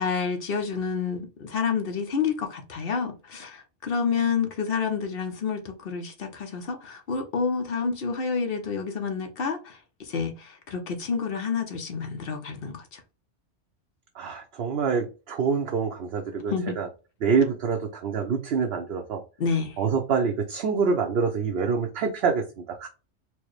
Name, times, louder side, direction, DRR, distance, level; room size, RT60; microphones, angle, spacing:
voice 1, 0.0-13.0 16.5-16.8 19.4-19.8, left 5 dB, 55° left, 1.0 m, -29 dB
voice 2, 14.2-16.9 17.2-19.2 19.8-22.9, right 5 dB, 60° right, 0.8 m, -26 dB
4.5 x 2.1 x 3.1 m
omnidirectional pair, 1.2 m